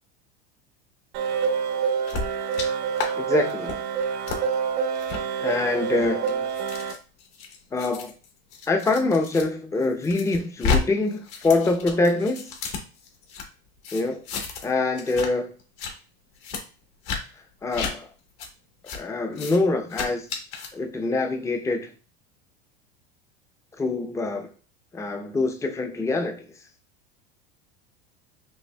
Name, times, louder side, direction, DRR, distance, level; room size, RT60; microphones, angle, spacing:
sound 1, 1.1-6.9, right 6 dB, 65° right, 0.8 m, -27 dB
sound 2, 2.1-2.7 3.0-3.1 3.5-3.8 4.3-4.4 5.0-5.2 5.9-9.4 9.8-10.8 11.1-13.4 13.8-14.7 15.0-15.3 15.6-15.9 16.4-16.6 17.0-17.2 17.7-17.9 18.4-18.5 18.9-19.0 19.3-19.6 19.9-20.7, left 5 dB, 60° left, 1.2 m, -31 dB
voice 1, 3.2-3.8 5.4-6.4 7.7-8.1 8.7-12.8 13.9-14.2 14.6-15.5 17.6-18.1 18.9-20.3 20.7-21.9 23.8-24.5 24.9-26.5, left 2 dB, 10° left, 0.6 m, -25 dB
5.3 x 2.9 x 2.2 m
supercardioid pair, 105°, 29 cm